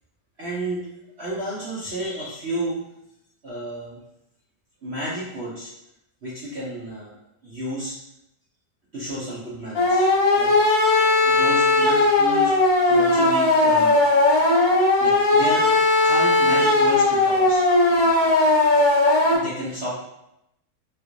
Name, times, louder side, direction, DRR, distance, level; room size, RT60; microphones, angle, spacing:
voice 1, 0.4-0.9 1.2-2.8 3.4-4.0 4.8-5.7 6.2-7.1 7.4-8.0 8.9-10.6 11.2-14.0 15.0-15.7 16.0-17.7 17.9-18.2 19.3-19.9, equal, 70° right, -8 dB, 0.6 m, -31 dB
sound 1, 9.7-19.4, left 2 dB, 70° left, 1.4 m, -18 dB
3.5 x 2.5 x 3.0 m, 0.83 s
omnidirectional pair, 2.1 m